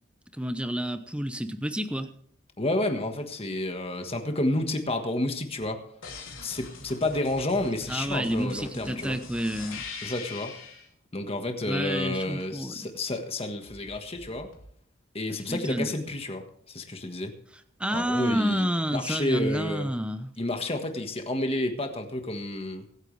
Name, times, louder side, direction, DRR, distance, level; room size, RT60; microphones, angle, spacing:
voice 1, 0.3-2.1 7.9-9.8 11.7-12.9 15.5-15.9 17.8-20.3, equal, 5° right, 10 dB, 0.8 m, -29 dB
voice 2, 2.6-5.8 6.4-9.2 10.0-10.5 11.1-14.5 15.1-17.3 17.9-18.7 18.9-19.9 20.4-22.8, left 1 dB, 30° left, 5 dB, 1.5 m, -30 dB
sound 1, 6.0-10.9 13.6-14.7, left 4 dB, 85° left, 2.9 m, -43 dB
24.0 x 9.2 x 3.4 m, 0.63 s
head